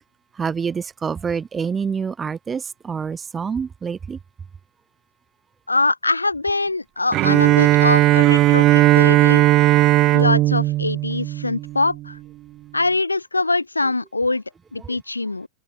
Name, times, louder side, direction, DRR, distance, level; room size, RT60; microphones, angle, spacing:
voice 1, 0.4-4.2 14.8-15.0, right 6 dB, 20° right, 1.0 m, -27 dB
voice 2, 5.7-9.5 10.1-12.2 12.7-14.4 14.7-15.5, left 2 dB, 80° left, 0.6 m, -23 dB
Bowed string instrument, 7.1-12.1, right 16 dB, 35° right, 0.3 m, -16 dB
figure-of-eight pair, 90°, 0 cm